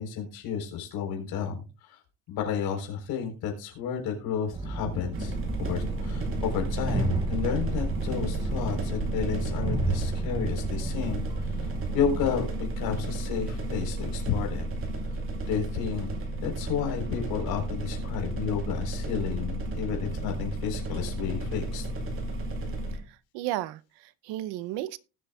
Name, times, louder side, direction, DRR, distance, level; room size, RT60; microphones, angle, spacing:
voice 1, 0.0-2.0 2.3-14.7 15.1-15.2 15.5-16.1 16.4-21.9, left 7 dB, 60° left, 3.9 m, -32 dB
Train, 4.5-12.3, right 3 dB, 10° right, 0.6 m, -33 dB
sound 1, 5.1-23.0, right 2 dB, 30° right, 2.4 m, -33 dB
voice 2, 23.3-25.0, right 15 dB, 75° right, 0.7 m, -33 dB
19.0 x 7.8 x 2.3 m
cardioid pair, 175°, 40 cm